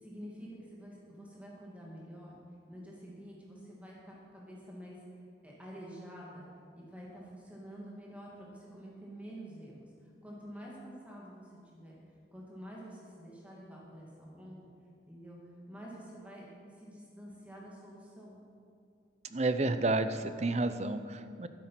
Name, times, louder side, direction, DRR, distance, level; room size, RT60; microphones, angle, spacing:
voice 1, 0.0-2.4 2.7-5.0 5.4-6.5 6.7-12.0 12.3-14.6 15.1-15.4 15.7-18.4, equal, 5° right, -4 dB, 2.5 m, -48 dB
voice 2, 19.3-21.5, right 2 dB, 35° right, 10 dB, 0.6 m, -30 dB
12.5 x 9.9 x 5.9 m, 2.3 s
head